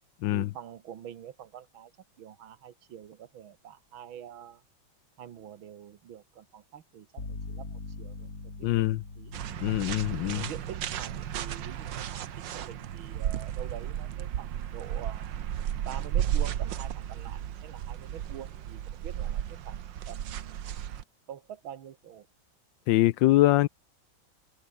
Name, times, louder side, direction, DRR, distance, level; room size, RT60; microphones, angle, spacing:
voice 1, 0.3-1.9 2.2-4.6 5.2-8.3 8.8-8.9 9.2-9.4 10.2-15.4 15.8-21.0 21.3-22.3, right 9 dB, 85° right, 2.1 m, -46 dB
sound 1, 7.2-14.9, left 3 dB, 45° left, 4.3 m, -45 dB
voice 2, 8.6-9.0 9.6-10.5 22.9-23.7, left 16 dB, 75° left, 1.2 m, -23 dB
sound 2, 9.3-21.0, right 10 dB, 70° right, 1.7 m, -34 dB
open air
omnidirectional pair, 2.2 m